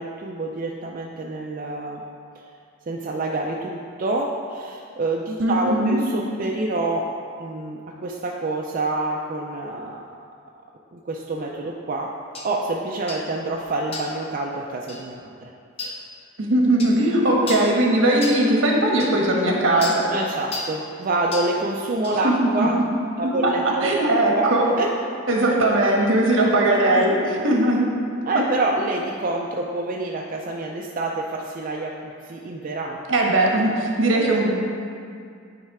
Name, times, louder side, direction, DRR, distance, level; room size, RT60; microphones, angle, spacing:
voice 1, 0.0-2.0 2.9-7.1 7.4-10.0 10.9-12.1 12.4-15.5 20.1-22.8 23.2-24.9 25.4-25.6 26.7-27.4 28.2-33.0, right 2 dB, 45° right, -1 dB, 0.4 m, -27 dB
voice 2, 5.4-6.0 16.4-20.0 22.2-22.3 23.2-23.5 23.8-24.7 25.3-27.1 27.4-27.8 33.1-34.5, right 1 dB, 75° right, -2 dB, 1.2 m, -19 dB
sound 1, 12.4-12.5 13.1-13.3 13.9-14.2 14.9-15.1 15.8-16.0 16.8-17.0 17.5-17.7 18.2-18.4 19.0-19.1 19.8-20.0 20.5-20.8 21.3-21.5 22.0-22.2, left 3 dB, 30° left, 0.8 m, -33 dB
9.5 x 3.2 x 4.8 m, 2.3 s
head